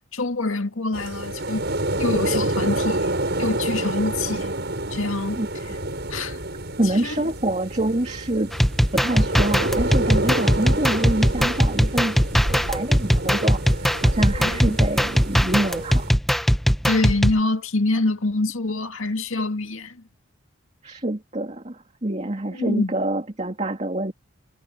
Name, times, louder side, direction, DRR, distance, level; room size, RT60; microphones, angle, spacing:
voice 1, 0.1-1.7 2.0-4.5 4.9-5.4 6.1-6.4 6.9-7.2 14.3-14.8 16.9-20.0 22.5-22.9, left 2 dB, 80° left, 2.2 m, -25 dB
sound 1, 0.9-16.1, right 1 dB, 55° right, 7.6 m, -28 dB
voice 2, 6.8-8.5 8.9-16.1 20.8-24.1, right 1 dB, 35° right, 2.5 m, -26 dB
sound 2, 8.5-17.4, equal, ahead, 0.6 m, -20 dB
head